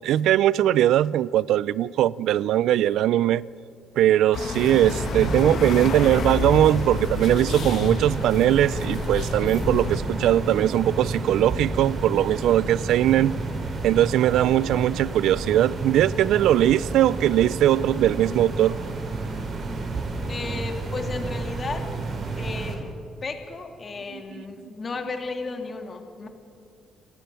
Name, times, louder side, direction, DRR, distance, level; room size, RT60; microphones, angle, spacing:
voice 1, 0.0-3.4 4.0-13.3 13.8-18.8 24.1-24.2, right 12 dB, 85° right, 0.4 m, -20 dB
sound 1, 4.3-10.0, left 6 dB, 65° left, 1.2 m, -30 dB
sound 2, 4.6-22.7, right 3 dB, 50° right, 4.5 m, -31 dB
voice 2, 20.3-21.8 22.4-22.8 23.2-26.3, left 4 dB, 40° left, 2.6 m, -34 dB
28.0 x 12.5 x 9.1 m
cardioid pair, 90°, 0 cm